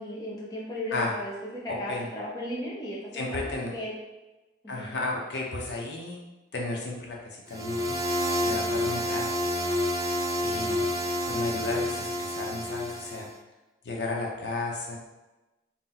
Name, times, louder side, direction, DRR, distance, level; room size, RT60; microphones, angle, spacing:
voice 1, 0.0-3.9 4.6-4.9 8.4-8.8, left 1 dB, 20° left, -6 dB, 0.9 m, -36 dB
voice 2, 1.7-2.1 3.1-3.7 4.7-6.2 6.5-8.0 8.4-9.3 10.4-10.9 11.3-13.3 13.8-15.0, left 2 dB, 75° left, -1 dB, 0.7 m, -33 dB
sound 1, 7.5-13.3, left 1 dB, 20° right, 0.4 m, -29 dB
3.8 x 2.1 x 4.2 m, 1.1 s
head